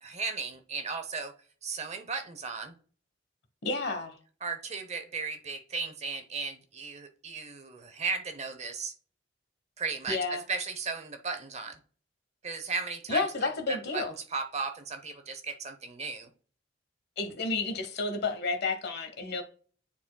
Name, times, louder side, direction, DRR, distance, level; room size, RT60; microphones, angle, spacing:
voice 1, 0.0-1.3 1.6-2.7 4.4-8.9 9.8-11.8 12.4-13.2 13.7-16.3, right 4 dB, 35° right, 0.8 m, -36 dB
voice 2, 3.6-4.2 10.1-10.4 13.1-14.1 17.2-19.4, left 3 dB, 60° left, 1.1 m, -31 dB
9.9 x 4.2 x 2.3 m
head